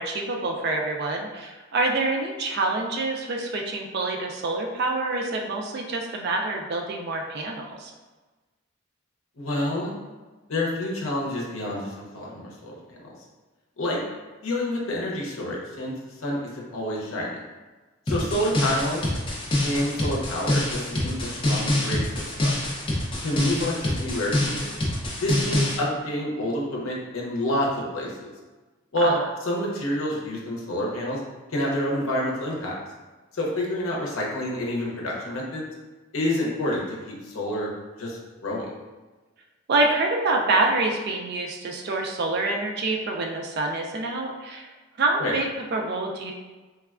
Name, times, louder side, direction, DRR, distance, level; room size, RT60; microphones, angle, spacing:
voice 1, 0.0-7.9 18.1-18.3 29.0-29.2 39.7-44.7 45.0-46.3, right 2 dB, 50° right, 2 dB, 0.3 m, -26 dB
voice 2, 9.4-10.0 10.5-13.1 13.8-14.0 14.4-15.9 16.2-17.4 18.1-19.0 19.6-22.0 22.4-22.6 23.2-24.7 25.2-28.3 28.9-31.2 31.5-32.7 33.3-35.6 36.1-37.7 38.0-38.7 45.2-45.3, left 1 dB, 70° left, -3 dB, 0.6 m, -28 dB
sound 1, 18.1-25.8, left 1 dB, 25° left, 0.4 m, -26 dB
3.3 x 2.1 x 2.3 m, 1.2 s
head